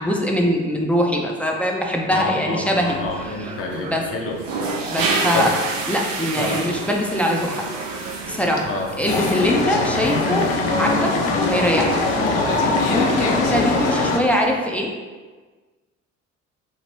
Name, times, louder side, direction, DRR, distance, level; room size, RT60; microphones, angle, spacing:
voice 1, 0.0-4.0 4.9-5.5 5.9-7.6 8.3-8.7 9.0-10.5 10.8-11.1 11.4-12.0 12.9-14.9, equal, 5° left, 0 dB, 0.4 m, -22 dB
voice 2, 2.1-4.4 5.3-5.5 6.4-6.6 8.6-9.7 13.2-13.4, left 3 dB, 35° left, 1 dB, 0.7 m, -29 dB
sound 1, 2.7-14.5, right 3 dB, 85° right, 0.5 m, -30 dB
sound 2, 9.1-14.2, left 3 dB, 70° left, 0.5 m, -21 dB
2.9 x 2.9 x 2.9 m, 1.4 s
hypercardioid pair, 50°, 37 cm